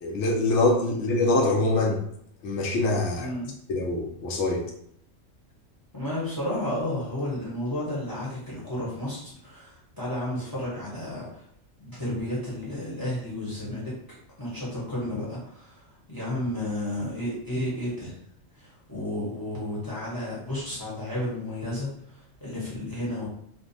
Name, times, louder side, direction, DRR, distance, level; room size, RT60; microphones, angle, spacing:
voice 1, 0.0-2.0 2.4-3.3 3.7-4.6, left 2 dB, 70° left, 1 dB, 0.8 m, -24 dB
voice 2, 3.2-3.5 5.9-11.4 11.8-13.9 14.4-15.8 16.1-18.1 18.5-23.3, left 1 dB, 20° left, -7 dB, 0.8 m, -32 dB
2.5 x 2.1 x 2.6 m, 0.70 s
omnidirectional pair, 1.3 m